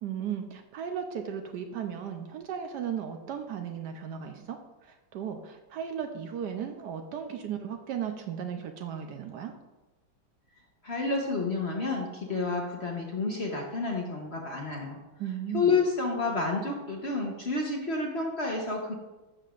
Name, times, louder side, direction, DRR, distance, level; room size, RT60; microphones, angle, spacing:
voice 1, 0.0-9.5 15.2-15.7, right 8 dB, 70° right, 5 dB, 1.1 m, -36 dB
voice 2, 10.8-15.0 15.5-18.9, left 3 dB, 45° left, 0 dB, 1.0 m, -30 dB
11.5 x 7.5 x 2.5 m, 1.1 s
omnidirectional pair, 2.1 m